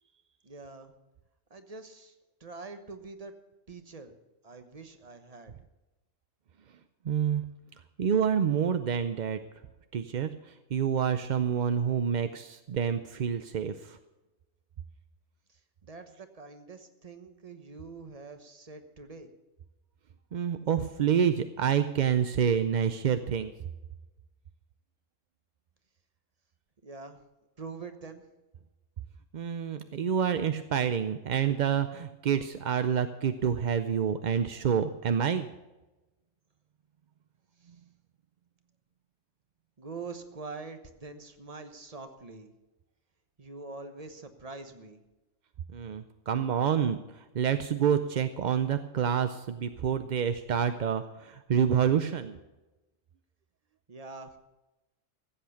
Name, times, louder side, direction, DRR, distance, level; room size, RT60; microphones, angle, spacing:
voice 1, 0.4-0.9 1.5-2.1 2.4-3.3 3.7-4.2 4.4-5.5 15.5-19.3 26.8-27.2 27.6-28.3 37.6-37.7 39.8-42.5 43.4-45.0 53.9-54.4, right 4 dB, 30° right, 8 dB, 1.2 m, -44 dB
voice 2, 7.0-7.4 8.0-9.4 9.9-14.0 20.3-23.5 29.3-35.5 45.7-52.4, right 8 dB, 55° right, 10 dB, 0.5 m, -28 dB
15.0 x 8.3 x 7.0 m, 1.1 s
omnidirectional pair, 1.3 m